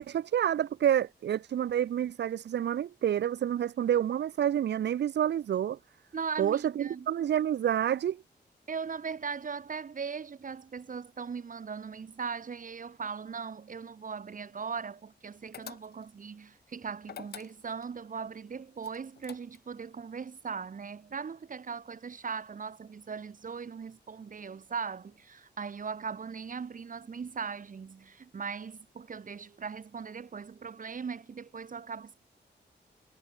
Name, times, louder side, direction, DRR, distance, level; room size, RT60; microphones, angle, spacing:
voice 1, 0.0-5.8 6.4-8.2, right 10 dB, 70° right, 0.5 m, -28 dB
voice 2, 6.1-7.1 8.7-32.2, right 5 dB, 45° right, 1.5 m, -39 dB
sound 1, 15.5-16.2 17.0-17.9 18.8-19.8, left 9 dB, 60° left, 0.6 m, -47 dB
wide cardioid pair, 130°, 18 cm